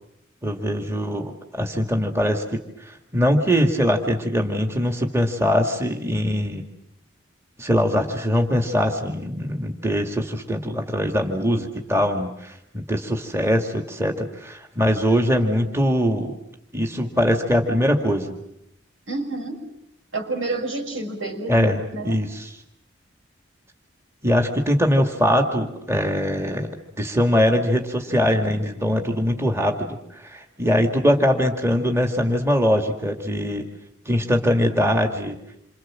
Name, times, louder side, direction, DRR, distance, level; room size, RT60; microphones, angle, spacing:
voice 1, 0.4-6.6 7.6-16.3 16.7-18.4 21.5-22.5 24.2-30.0 30.2-33.6 34.1-35.4, equal, 15° right, 3 dB, 2.2 m, -22 dB
voice 2, 19.1-19.7 20.1-22.2, right 2 dB, 85° right, 2 dB, 6.5 m, -29 dB
28.0 x 26.5 x 7.6 m, 0.81 s
head